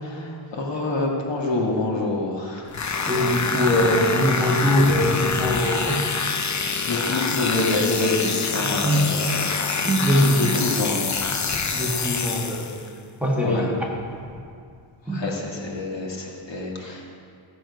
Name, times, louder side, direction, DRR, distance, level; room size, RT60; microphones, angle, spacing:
voice 1, 0.0-2.9 4.8-5.0 5.8-6.2 6.9-9.7 10.2-11.7 13.4-13.7 15.1-17.1, left 2 dB, 60° left, -2 dB, 1.8 m, -27 dB
sound 1, 2.7-12.9, left 5 dB, 35° left, 0.6 m, -26 dB
voice 2, 3.1-6.1 8.6-9.0 9.8-10.4 11.7-12.7 13.2-13.7 15.1-15.2, equal, 5° right, -4 dB, 1.7 m, -22 dB
15.0 x 7.6 x 5.2 m, 2.3 s
wide cardioid pair, 160°, 50 cm